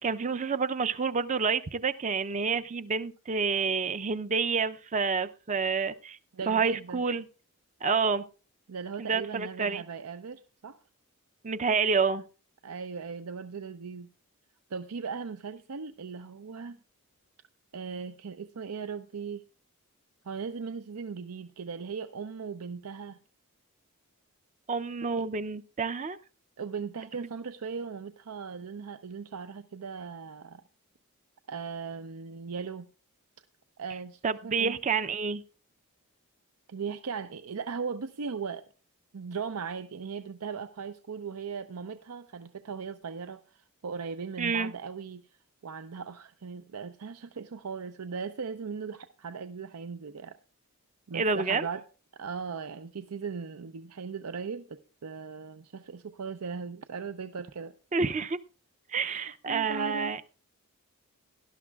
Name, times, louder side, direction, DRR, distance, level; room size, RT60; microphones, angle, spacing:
voice 1, 0.0-6.2 6.5-7.3 7.8-8.3 9.0-9.8 11.4-12.2 24.7-26.2 27.2-27.3 34.2-35.4 44.4-44.7 51.1-51.7 57.9-58.4 58.9-60.2, right 5 dB, 35° right, 12 dB, 0.5 m, -28 dB
voice 2, 6.3-7.0 8.7-10.8 12.6-14.1 14.7-16.8 17.7-19.4 20.2-23.2 26.6-30.6 31.5-32.9 33.8-34.8 36.7-38.6 39.1-45.2 45.6-50.4 51.1-51.8 52.1-57.7 59.0-60.2, right 5 dB, 85° right, 9 dB, 0.6 m, -38 dB
18.0 x 12.0 x 2.3 m, 0.36 s
head